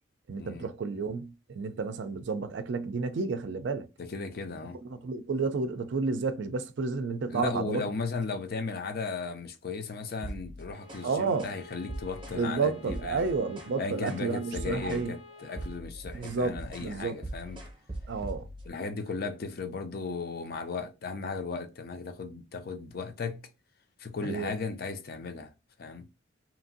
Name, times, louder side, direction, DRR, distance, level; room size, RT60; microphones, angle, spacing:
voice 1, 0.3-3.9 4.8-7.8 11.0-11.5 12.3-15.1 16.1-16.5 16.8-17.2 18.1-18.5 24.2-24.5, right 4 dB, 65° right, 0.4 m, -31 dB
voice 2, 4.0-4.8 7.3-13.3 13.8-17.6 18.7-23.5 24.0-25.5 25.8-26.1, left 4 dB, 50° left, 0.5 m, -36 dB
sound 1, 10.1-11.1 11.4-11.6 11.9-12.4 12.8-13.8 14.1-14.3 14.6-15.1 15.4-18.7, right 1 dB, 25° right, 0.7 m, -41 dB
Bowed string instrument, 10.7-15.9, left 4 dB, 85° left, 1.6 m, -51 dB
2.9 x 2.5 x 2.5 m
head